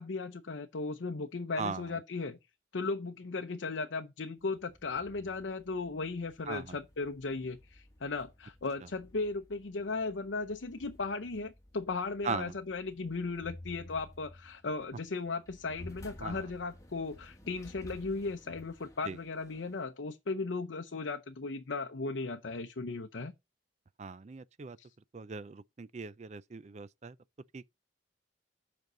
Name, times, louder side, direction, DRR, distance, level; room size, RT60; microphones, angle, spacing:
voice 1, 0.0-2.4 2.7-23.3 24.8-24.9, left 3 dB, 70° left, 0.7 m, -36 dB
voice 2, 1.6-2.0 6.5-6.8 12.2-12.6 16.2-16.5 19.0-19.2 24.0-24.8 25.1-27.2 27.5-27.7, right 4 dB, 35° right, 0.4 m, -39 dB
sound 1, 4.4-19.8, left 1 dB, 15° left, 1.5 m, -54 dB
8.0 x 5.3 x 6.1 m
head